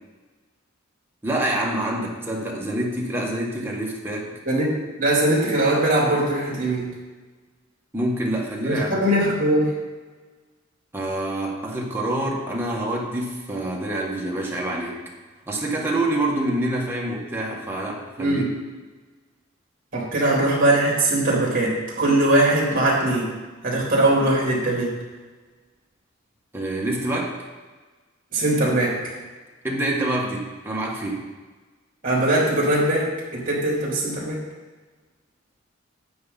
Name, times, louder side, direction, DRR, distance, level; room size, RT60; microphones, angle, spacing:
voice 1, 1.2-4.3 7.9-9.0 10.9-15.0 15.5-18.5 26.5-27.3 29.6-31.3, right 1 dB, 10° right, -3 dB, 1.6 m, -26 dB
voice 2, 4.4-6.9 8.6-9.7 18.2-18.5 19.9-23.3 23.6-25.0 28.3-29.1 32.0-34.4, right 1 dB, 40° right, -3 dB, 3.4 m, -21 dB
9.5 x 8.9 x 4.2 m, 1.3 s
head